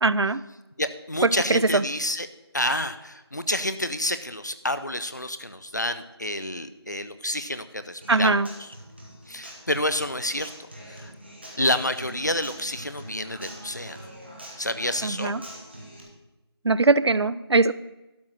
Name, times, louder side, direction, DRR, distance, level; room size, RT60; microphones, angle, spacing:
voice 1, 0.0-0.4 1.2-1.8 8.1-8.5 15.0-15.4 16.6-17.7, right 3 dB, 75° right, 17 dB, 0.5 m, -21 dB
voice 2, 0.8-2.3 2.5-8.7 9.3-10.5 10.9-11.1 11.6-14.0 14.6-15.3, left 1 dB, 45° left, 11 dB, 0.6 m, -29 dB
Human voice / Acoustic guitar, 8.0-16.0, equal, 25° right, 1.5 m, -44 dB
12.0 x 4.9 x 6.3 m, 1.0 s
figure-of-eight pair, 180°, 14 cm